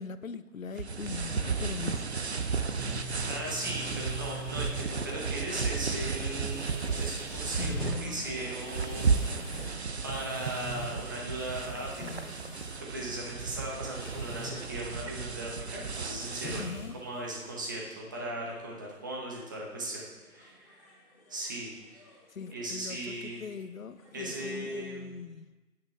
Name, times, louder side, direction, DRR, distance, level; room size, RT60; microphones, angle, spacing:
voice 1, 0.0-2.0 7.5-8.5 16.5-17.0 22.3-25.5, left 6 dB, 55° left, 13 dB, 0.7 m, -41 dB
sound 1, 0.8-16.7, right 5 dB, 45° right, 0.7 m, -34 dB
sound 2, 1.4-17.6, equal, 5° left, 2.3 m, -44 dB
voice 2, 3.3-7.7 8.0-12.3 12.8-21.0 21.3-22.1 22.5-23.4 24.1-25.2, right 1 dB, 15° right, -2 dB, 1.0 m, -38 dB
sound 3, 17.4-24.8, left 1 dB, 25° left, 2.6 m, -59 dB
14.5 x 8.9 x 3.4 m, 1.2 s
figure-of-eight pair, 155°, 47 cm